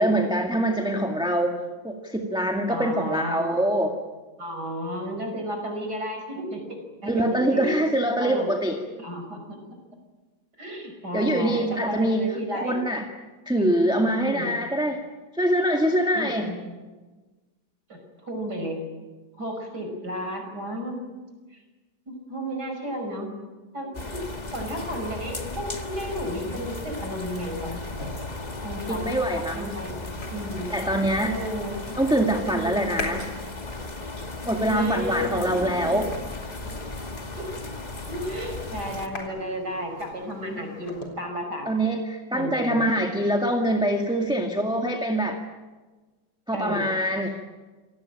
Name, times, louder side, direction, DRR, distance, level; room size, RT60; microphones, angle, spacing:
voice 1, 0.0-1.6 1.8-3.9 7.1-8.8 11.1-12.2 12.5-13.0 13.5-15.0 15.3-16.5 28.9-29.7 30.7-31.3 32.0-33.2 34.4-36.1 41.7-45.4 46.5-47.3, right 1 dB, ahead, 2 dB, 1.9 m, -24 dB
voice 2, 2.7-3.6 4.4-7.8 8.2-8.5 9.0-9.4 10.6-12.8 13.6-13.8 14.2-14.5 16.1-16.7 17.9-18.8 19.4-21.1 21.5-21.6 22.1-23.3 23.7-24.2 24.5-27.8 28.6-29.0 29.6-30.0 30.3-30.7 31.2-32.1 32.5-33.0 34.6-36.0 36.6-36.8 37.4-37.5 38.1-41.7 42.3-42.9 46.5-46.9, equal, 60° right, 4 dB, 6.1 m, -33 dB
sound 1, 23.9-39.1, left 2 dB, 25° left, 1.7 m, -36 dB
sound 2, 27.8-41.1, left 2 dB, 75° left, 4.6 m, -42 dB
27.5 x 18.5 x 9.0 m, 1.3 s
omnidirectional pair, 2.0 m